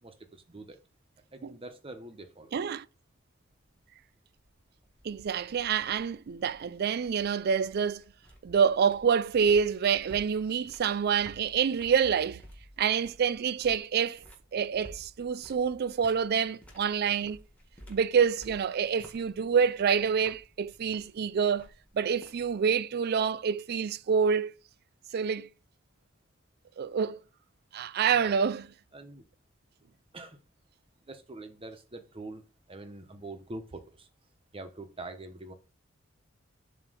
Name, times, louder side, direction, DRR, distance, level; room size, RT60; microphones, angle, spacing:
voice 1, 0.0-0.8 1.3-2.6 28.1-28.4 28.9-29.2 30.1-30.4 31.1-34.1 34.5-35.5, right 2 dB, 30° right, 0.9 m, -44 dB
voice 2, 2.5-2.8 5.0-8.0 8.4-12.4 12.8-14.2 14.5-17.4 17.9-21.7 21.9-24.5 25.1-25.5 26.8-27.2 27.7-28.7, right 7 dB, 55° right, 0.4 m, -27 dB
sound 1, 3.4-22.7, equal, 5° left, 1.6 m, -55 dB
7.5 x 3.0 x 6.2 m
head